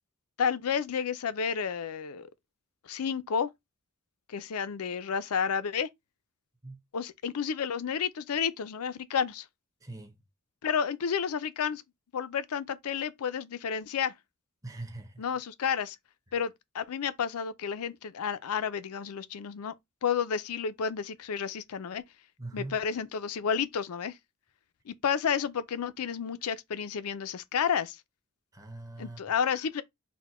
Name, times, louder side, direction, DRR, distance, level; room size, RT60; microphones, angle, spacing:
voice 1, 0.4-2.3 2.8-3.5 4.3-5.9 6.9-9.5 10.6-11.8 12.1-14.1 15.2-16.0 16.3-19.7 20.0-22.0 22.5-24.2 24.9-28.0 29.0-29.8, left 7 dB, 80° left, 0.5 m, -31 dB
voice 2, 9.8-10.1 14.6-15.2 22.4-22.8 28.5-29.2, right 2 dB, 15° right, 0.6 m, -41 dB
4.2 x 2.2 x 4.1 m
head